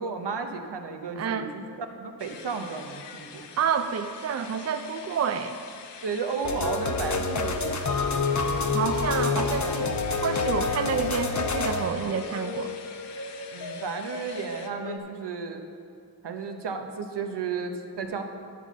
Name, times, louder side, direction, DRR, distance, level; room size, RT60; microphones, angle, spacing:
voice 1, 0.0-3.5 6.0-8.1 13.5-15.6 16.2-18.2, right 5 dB, 75° right, 5 dB, 0.9 m, -33 dB
voice 2, 1.2-1.5 3.6-5.6 8.7-12.7, right 7 dB, 40° right, 8 dB, 0.5 m, -29 dB
sound 1, 2.2-14.7, left 6 dB, 85° left, 0.7 m, -46 dB
sound 2, 6.4-15.0, left 4 dB, 45° left, 0.8 m, -29 dB
10.0 x 4.1 x 7.2 m, 2.4 s
cardioid pair, 50°, 41 cm